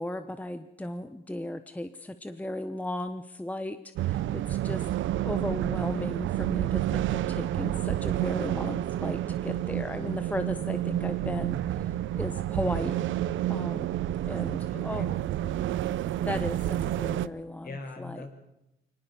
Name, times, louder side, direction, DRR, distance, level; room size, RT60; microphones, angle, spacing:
voice 1, 0.0-4.8 5.2-13.0 13.5-13.9 14.2-15.1 16.2-18.3, left 1 dB, 5° left, 10 dB, 1.0 m, -36 dB
sound 1, 4.0-17.3, right 13 dB, 75° right, 0.7 m, -29 dB
voice 2, 14.4-15.6 17.6-18.3, left 3 dB, 50° left, 5 dB, 5.3 m, -43 dB
24.0 x 19.0 x 7.0 m, 0.88 s
cardioid pair, 90°, 20 cm